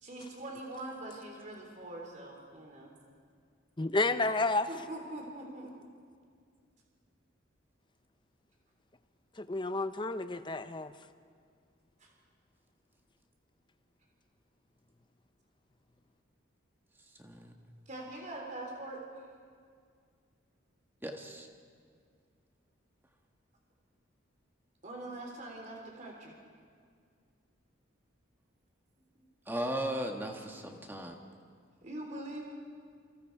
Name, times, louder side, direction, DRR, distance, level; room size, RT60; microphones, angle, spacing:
voice 1, 0.0-2.9 4.7-5.7 12.0-12.1 17.9-19.3 24.8-26.3 31.8-32.4, right 1 dB, 35° right, 3.5 m, -43 dB
voice 2, 3.8-4.7 9.4-10.9, left 2 dB, 25° left, 0.7 m, -30 dB
voice 3, 17.2-17.5 21.0-21.5 29.4-31.2, right 1 dB, 10° right, 1.6 m, -36 dB
28.5 x 24.5 x 4.7 m
head